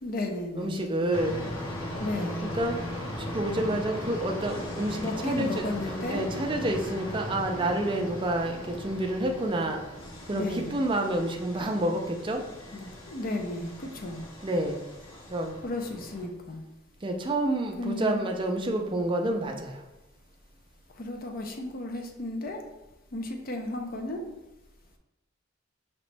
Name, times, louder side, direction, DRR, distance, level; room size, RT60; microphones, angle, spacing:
voice 1, 0.0-0.8 2.0-2.4 5.0-6.3 10.3-10.7 12.7-14.2 15.6-16.6 17.8-18.2 21.0-22.6 23.1-24.3, left 1 dB, 45° left, 3 dB, 0.5 m, -34 dB
voice 2, 0.6-1.4 2.4-2.8 3.2-9.8 10.3-12.4 14.4-14.8 15.3-15.6 17.0-19.8, right 1 dB, 25° right, 3 dB, 0.4 m, -29 dB
sound 1, 1.1-16.3, left 1 dB, 75° left, 1.2 m, -38 dB
5.1 x 2.9 x 3.3 m, 0.98 s
head